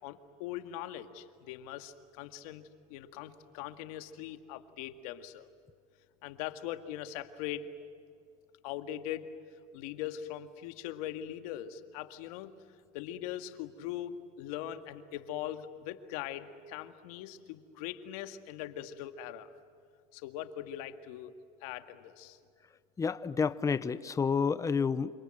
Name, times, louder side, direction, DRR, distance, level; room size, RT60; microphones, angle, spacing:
voice 1, 0.0-2.6 2.9-5.5 6.2-7.7 8.6-9.3 9.7-12.5 12.9-19.5 20.1-21.3 21.6-22.4, left 11 dB, 80° left, 8 dB, 2.0 m, -41 dB
voice 2, 23.0-25.1, left 5 dB, 15° left, 14 dB, 0.8 m, -29 dB
28.0 x 26.5 x 7.9 m, 2.3 s
supercardioid pair, 130°, 19 cm